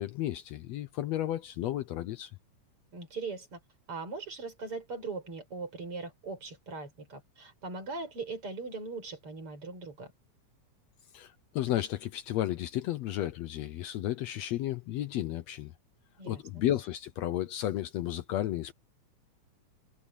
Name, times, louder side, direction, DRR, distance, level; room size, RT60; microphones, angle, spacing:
voice 1, 0.0-2.3 11.1-15.7 16.3-18.7, left 13 dB, 70° left, 1.9 m, -33 dB
voice 2, 2.9-3.6 3.9-10.1 16.2-16.6, right 4 dB, 45° right, 6.8 m, -40 dB
omnidirectional pair, 3.3 m